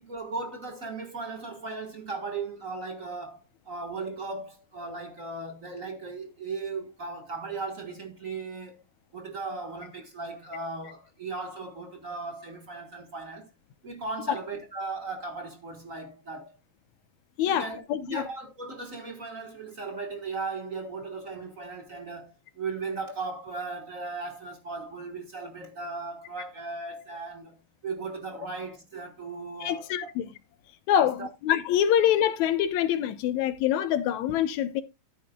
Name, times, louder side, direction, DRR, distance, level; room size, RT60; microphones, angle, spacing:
voice 1, 0.0-8.8 9.1-13.5 13.8-16.5 17.4-27.6 27.8-29.9 30.9-31.3, right 3 dB, 35° right, 1.4 m, -37 dB
voice 2, 17.4-18.3 29.6-30.2 30.9-31.2 31.4-34.8, left 10 dB, 75° left, 2.2 m, -25 dB
14.0 x 8.7 x 2.3 m
omnidirectional pair, 3.5 m